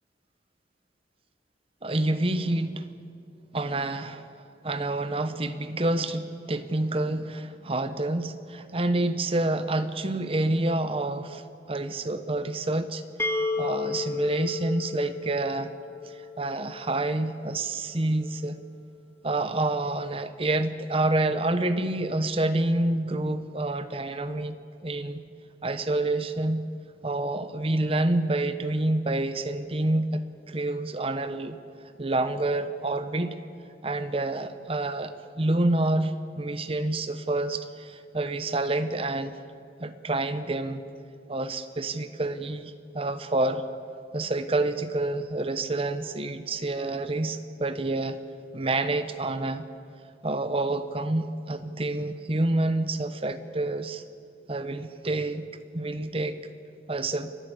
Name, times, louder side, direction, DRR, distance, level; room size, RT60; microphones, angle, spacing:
voice 1, 1.8-2.9 3.5-11.4 11.7-13.0 13.6-15.7 16.0-18.6 19.2-25.2 25.6-26.6 27.0-31.6 32.0-33.4 33.8-39.4 39.8-40.8 41.3-43.6 44.1-48.2 48.5-49.6 50.2-54.0 54.5-55.5 55.7-56.4 56.9-57.3, right 2 dB, 30° right, 11 dB, 0.9 m, -28 dB
sound 1, 13.2-16.9, left 3 dB, 15° left, 0.9 m, -32 dB
29.5 x 10.5 x 8.2 m, 2.3 s
head